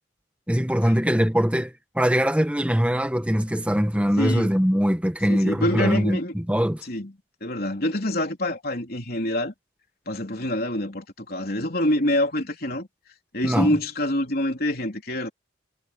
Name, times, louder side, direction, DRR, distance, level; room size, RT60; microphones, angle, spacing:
voice 1, 0.5-6.8 13.4-13.8, equal, 5° right, 1.6 m, -22 dB
voice 2, 4.2-4.5 5.3-6.3 6.8-7.1 7.4-9.5 10.1-12.9 13.3-15.3, left 1 dB, 50° left, 3.7 m, -26 dB
head